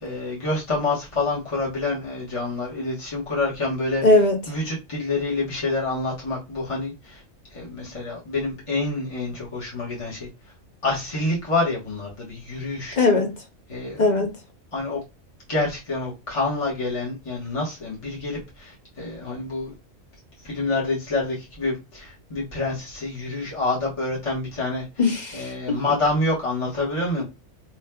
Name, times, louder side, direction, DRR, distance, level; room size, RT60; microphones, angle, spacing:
voice 1, 0.0-4.0 4.5-7.2 7.5-10.3 10.8-13.0 13.7-14.2 14.7-15.0 15.5-19.7 20.4-24.9 25.3-27.2, left 2 dB, 25° left, 1.2 m, -27 dB
voice 2, 4.0-4.4 13.0-13.4 14.0-14.3 25.0-25.8, left 2 dB, 40° left, 0.7 m, -19 dB
4.5 x 3.1 x 2.2 m
omnidirectional pair, 1.4 m